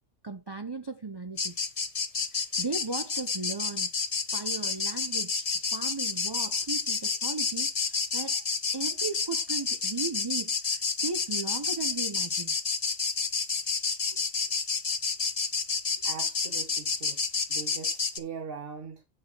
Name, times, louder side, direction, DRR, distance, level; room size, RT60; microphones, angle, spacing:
voice 1, 0.2-1.6 2.3-3.9 4.3-8.4 8.7-12.6, right 4 dB, 30° right, 0.5 m, -37 dB
sound 1, 1.4-18.2, left 4 dB, 30° left, 0.9 m, -30 dB
voice 2, 16.0-17.2 17.5-19.0, right 6 dB, 45° right, 1.4 m, -41 dB
8.7 x 4.9 x 6.0 m
omnidirectional pair, 1.4 m